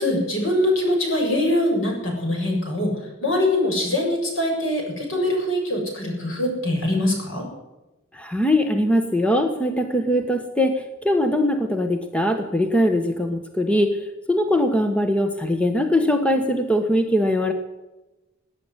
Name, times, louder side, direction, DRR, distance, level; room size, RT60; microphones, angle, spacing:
voice 1, 0.0-7.5, left 1 dB, 70° left, 0 dB, 7.2 m, -23 dB
voice 2, 8.1-17.5, left 1 dB, 5° left, 6 dB, 1.2 m, -21 dB
18.0 x 9.7 x 8.2 m, 1.0 s
head